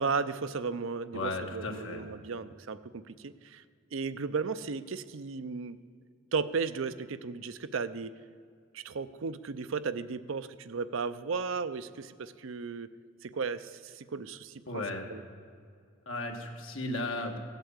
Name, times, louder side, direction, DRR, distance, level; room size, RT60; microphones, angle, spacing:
voice 1, 0.0-3.6 3.9-5.8 6.3-8.1 8.7-12.9 13.2-14.8 15.1-15.2, right 5 dB, 70° right, 13 dB, 0.5 m, -35 dB
voice 2, 1.1-2.1 14.7-15.0 16.1-17.4, left 2 dB, 80° left, 2 dB, 1.7 m, -35 dB
15.5 x 8.1 x 8.1 m, 2.2 s
head